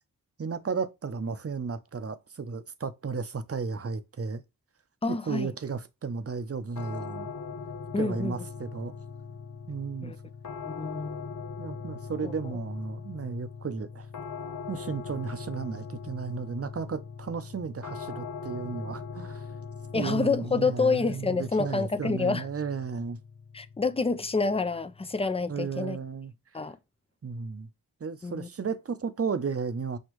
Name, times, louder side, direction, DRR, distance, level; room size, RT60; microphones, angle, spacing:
voice 1, 0.4-4.4 5.1-7.3 8.0-8.9 9.7-10.1 11.6-14.1 14.7-19.5 19.9-23.2 25.5-26.6 27.2-27.7 28.0-30.0, right 5 dB, 40° right, 0.7 m, -34 dB
voice 2, 5.0-5.5 7.9-8.4 10.0-10.2 10.6-11.3 12.2-12.5 19.9-22.4 23.5-26.0 26.5-26.8 28.2-28.5, left 4 dB, 15° left, 0.5 m, -28 dB
sound 1, 6.8-25.7, left 5 dB, 50° left, 0.7 m, -41 dB
6.3 x 2.4 x 3.0 m
cardioid pair, 45°, 37 cm